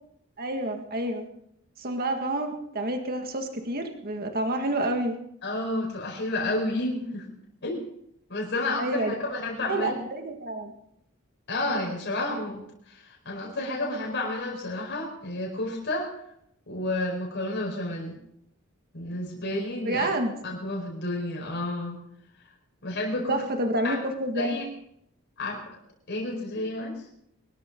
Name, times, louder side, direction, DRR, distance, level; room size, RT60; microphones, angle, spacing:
voice 1, 0.4-1.3 1.8-5.1 8.8-9.2 9.6-10.7 19.9-20.4 23.3-24.6, right 1 dB, 45° right, 4 dB, 1.9 m, -28 dB
voice 2, 5.4-7.3 7.6-7.9 8.3-10.0 11.5-12.6 12.9-16.1 16.7-18.2 18.9-20.1 20.4-22.0 22.8-23.4 23.8-24.0 24.3-24.6 25.4-25.6 26.1-26.9, left 2 dB, 55° left, -2 dB, 4.7 m, -30 dB
23.5 x 13.0 x 3.9 m, 0.72 s
head